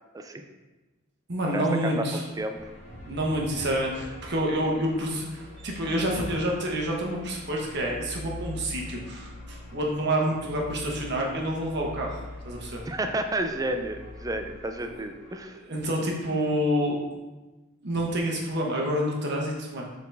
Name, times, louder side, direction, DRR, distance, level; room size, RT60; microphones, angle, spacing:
voice 1, 1.3-2.2 3.0-12.2 12.4-12.8 14.9-15.0 15.3-17.0 17.8-19.9, equal, 55° right, -1 dB, 1.2 m, -28 dB
sound 1, 2.5-15.4, left 2 dB, 35° left, 1.7 m, -43 dB
voice 2, 12.9-15.6, right 1 dB, 15° right, 6 dB, 0.4 m, -31 dB
6.9 x 4.1 x 3.4 m, 1.1 s
head